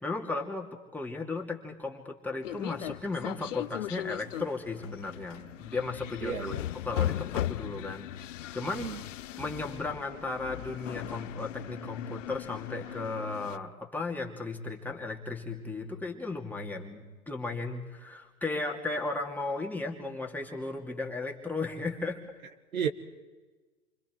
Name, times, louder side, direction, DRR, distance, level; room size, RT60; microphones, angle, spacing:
voice 1, 0.0-6.5 6.8-8.1 8.5-8.9 9.4-22.2, left 3 dB, 5° left, 0 dB, 2.6 m, -35 dB
sound 1, 2.4-13.6, left 13 dB, 60° left, 0.6 m, -38 dB
voice 2, 6.2-6.6 8.6-9.0 22.7-22.9, right 7 dB, 70° right, 7 dB, 1.8 m, -32 dB
29.0 x 24.5 x 4.7 m, 1.3 s
figure-of-eight pair, 100°, 43 cm